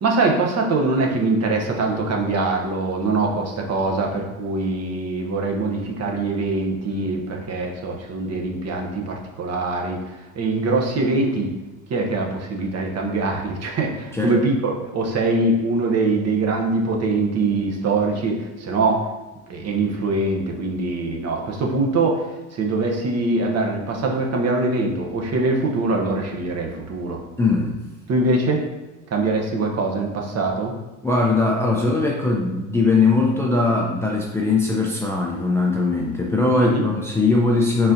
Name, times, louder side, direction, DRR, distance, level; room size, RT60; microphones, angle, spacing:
voice 1, 0.0-10.0 10.4-11.5 11.9-19.0 19.5-22.3 22.5-27.2 28.1-28.6 29.1-30.7 36.5-36.9, right 3 dB, 40° right, 1 dB, 0.9 m, -23 dB
voice 2, 27.4-27.7 31.0-37.9, left 3 dB, 5° left, -3 dB, 0.5 m, -20 dB
4.1 x 3.8 x 2.7 m, 1.1 s
hypercardioid pair, 85°, 40 cm